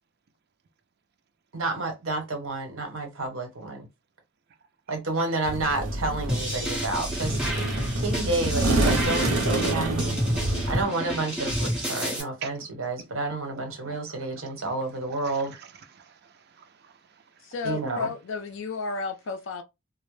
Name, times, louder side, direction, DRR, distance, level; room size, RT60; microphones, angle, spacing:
voice 1, 1.5-3.9 4.9-7.5 8.0-10.2 10.7-15.6 17.6-18.1, right 2 dB, 65° right, 1.0 m, -30 dB
sound 1, 5.5-10.8, right 2 dB, 90° right, 0.6 m, -27 dB
sound 2, 6.3-12.2, equal, 5° right, 0.9 m, -30 dB
voice 2, 13.5-17.2, right 7 dB, 50° right, 0.4 m, -47 dB
voice 3, 17.4-19.6, left 4 dB, 60° left, 0.4 m, -32 dB
2.0 x 2.0 x 3.1 m
head